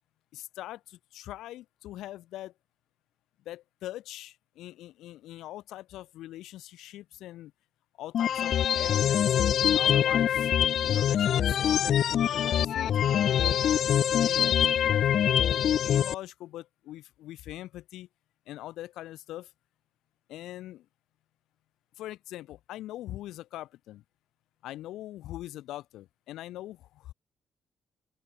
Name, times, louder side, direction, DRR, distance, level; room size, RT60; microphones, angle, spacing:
voice 1, 0.3-2.5 3.5-7.5 8.0-10.5 10.9-13.6 14.2-14.7 15.1-18.1 18.5-19.5 20.3-20.9 22.0-24.0 24.6-27.1, left 14 dB, 85° left, 1.8 m, -42 dB
sound 1, 8.1-16.1, left 9 dB, 65° left, 0.3 m, -24 dB
open air
cardioid pair, 90°, 0 cm